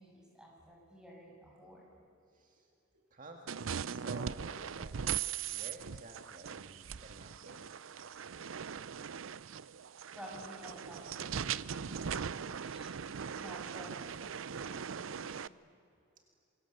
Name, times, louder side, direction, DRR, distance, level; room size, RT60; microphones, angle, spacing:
voice 1, 0.0-1.9 10.1-13.0 13.3-15.5, equal, 5° right, -1 dB, 6.9 m, -52 dB
voice 2, 2.3-2.7 2.9-4.9 5.5-7.9, right 2 dB, 40° right, 3 dB, 2.0 m, -52 dB
sound 1, 3.5-15.5, right 7 dB, 90° right, 0.6 m, -40 dB
28.0 x 23.5 x 8.1 m, 2.6 s
head